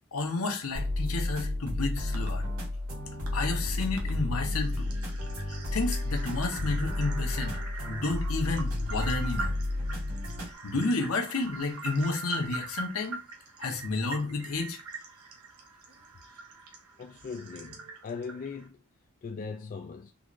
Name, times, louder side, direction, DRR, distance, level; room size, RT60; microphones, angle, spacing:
voice 1, 0.1-2.4 3.3-4.9 5.5-7.6 7.8-9.6 10.6-13.2 13.6-14.8, left 3 dB, 75° left, 0.9 m, -31 dB
sound 1, 0.7-10.5, left 1 dB, 70° right, 1.8 m, -32 dB
sound 2, 2.1-2.3 3.3-3.4 4.0-4.1 4.5-18.7, right 4 dB, 85° right, 0.9 m, -43 dB
voice 2, 17.0-18.8 19.2-20.1, left 5 dB, 40° left, 0.3 m, -39 dB
3.9 x 3.0 x 2.5 m
head